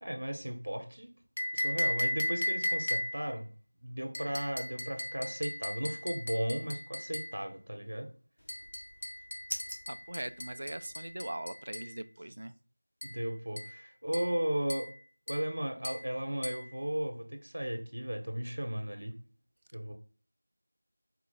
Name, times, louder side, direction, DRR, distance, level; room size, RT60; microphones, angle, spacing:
voice 1, 0.0-1.1 1.5-3.5 3.8-8.1 13.0-14.9 15.3-19.1 19.7-19.9, right 1 dB, 55° right, 0.9 m, -35 dB
sound 1, 1.4-3.3 4.1-7.4 8.5-11.9 13.0-13.2 13.6-13.8 14.1-14.4 14.7-15.0 15.3-15.5 15.8-16.1 16.4-16.7, left 1 dB, 35° left, 0.5 m, -36 dB
sound 2, 8.4-11.2, equal, 70° left, 1.1 m, -46 dB
voice 2, 9.9-12.5, right 1 dB, 35° right, 0.3 m, -40 dB
4.3 x 2.5 x 4.2 m
figure-of-eight pair, 175°, 0 cm